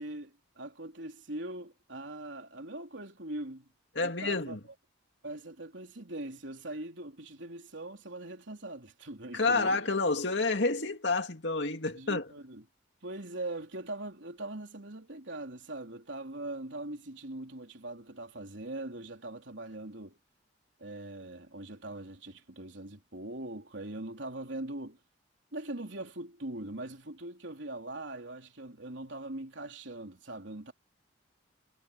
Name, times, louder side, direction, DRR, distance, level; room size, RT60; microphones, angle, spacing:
voice 1, 0.0-4.6 5.2-9.8 11.9-12.6 13.0-20.2 20.8-25.0 25.5-30.7, right 2 dB, 70° right, 3.5 m, -41 dB
voice 2, 3.9-4.6 9.3-12.3, left 3 dB, 60° left, 2.5 m, -29 dB
head